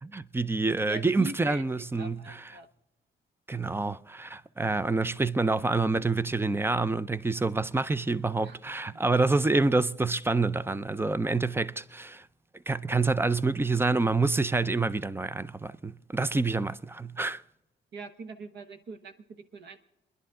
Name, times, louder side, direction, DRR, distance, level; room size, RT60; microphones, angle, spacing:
voice 1, 0.0-2.5 3.5-12.2 12.7-17.4, right 3 dB, 10° right, 0.5 m, -27 dB
voice 2, 0.8-2.7 8.4-8.6 8.9-9.0 17.9-19.8, right 4 dB, 60° right, 1.2 m, -43 dB
29.5 x 10.5 x 3.7 m
cardioid pair, 90°, 20 cm